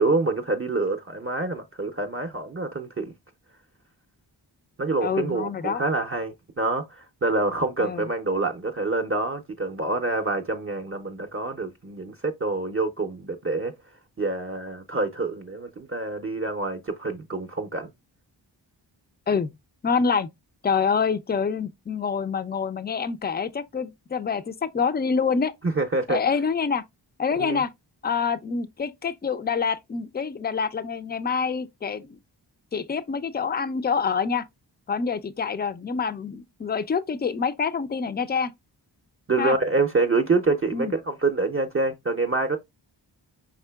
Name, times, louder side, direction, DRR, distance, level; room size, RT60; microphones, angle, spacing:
voice 1, 0.0-3.1 4.8-13.7 14.2-17.9 25.8-26.2 27.4-27.6 39.3-42.6, right 3 dB, 30° right, 0.6 m, -26 dB
voice 2, 5.0-5.8 7.8-8.1 19.3-19.5 19.8-20.3 20.6-25.5 26.1-26.8 27.2-27.7 28.0-32.2 32.7-34.4 34.9-38.5 39.4-39.6 40.7-40.9, left 5 dB, 25° left, 0.4 m, -26 dB
4.8 x 3.7 x 2.2 m
cardioid pair, 50°, 46 cm